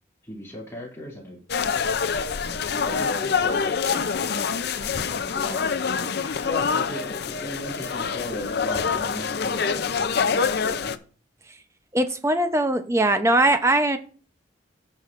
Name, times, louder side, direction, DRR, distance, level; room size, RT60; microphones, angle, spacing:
voice 1, 0.2-1.7 2.4-10.9, left 1 dB, 15° left, -2 dB, 2.5 m, -37 dB
sound 1, 1.5-11.0, left 6 dB, 55° left, 0.5 m, -26 dB
voice 2, 11.9-14.0, right 1 dB, 15° right, 8 dB, 0.7 m, -20 dB
15.5 x 6.3 x 2.5 m, 0.41 s
head